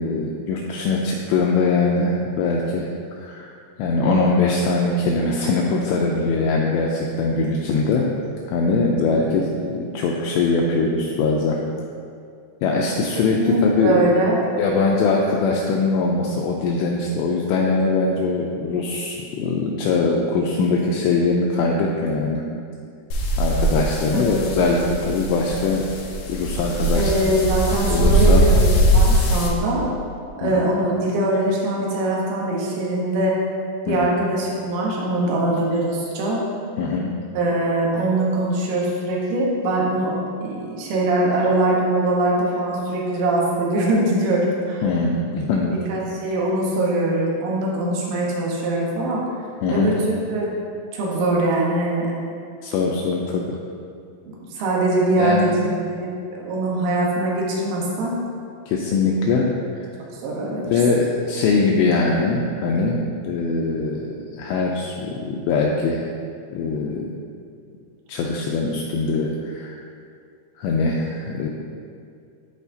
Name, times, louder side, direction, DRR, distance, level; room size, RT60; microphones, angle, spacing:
voice 1, 0.0-3.5 3.8-8.1 8.5-11.6 12.6-14.1 14.6-22.4 23.4-25.9 26.3-27.3 27.9-28.4 30.4-30.6 33.9-34.1 36.8-37.1 44.8-45.8 49.6-49.9 52.6-53.5 55.2-55.5 58.7-59.5 59.8-59.9 60.7-66.1 66.5-67.2 68.1-69.8 70.6-71.5, left 3 dB, 90° left, -1 dB, 2.5 m, -22 dB
voice 2, 13.4-14.4 24.1-24.6 26.9-29.9 30.4-33.4 33.9-36.4 37.4-44.9 45.9-49.2 49.7-50.0 50.3-50.5 50.9-52.1 54.3-58.2 60.2-60.8, right 1 dB, 85° right, -3 dB, 3.7 m, -22 dB
sound 1, 23.1-29.5, right 1 dB, 75° left, 2.5 m, -20 dB
13.0 x 4.4 x 2.7 m, 2.4 s
omnidirectional pair, 5.5 m